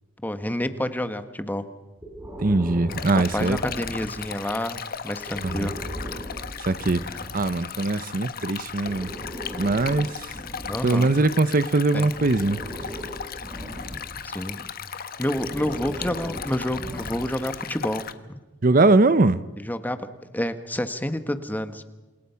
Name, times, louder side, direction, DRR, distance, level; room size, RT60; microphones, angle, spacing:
voice 1, 0.2-1.6 3.1-5.7 10.7-11.1 11.9-12.1 14.2-14.7 15.2-18.4 19.6-20.1 20.3-21.8, left 1 dB, 10° left, 10 dB, 1.4 m, -29 dB
Breathing, 2.0-4.4 5.2-7.5 8.6-11.5 12.1-14.3 15.2-17.5, equal, 15° right, 5.3 m, -38 dB
voice 2, 2.4-3.6 5.4-5.7 6.6-9.1 9.6-10.3 10.8-12.6 18.6-19.4, right 2 dB, 45° right, 15 dB, 0.7 m, -21 dB
Stream, 2.9-18.1, left 7 dB, 50° left, 1.3 m, -37 dB
29.0 x 27.5 x 5.8 m, 1.1 s
head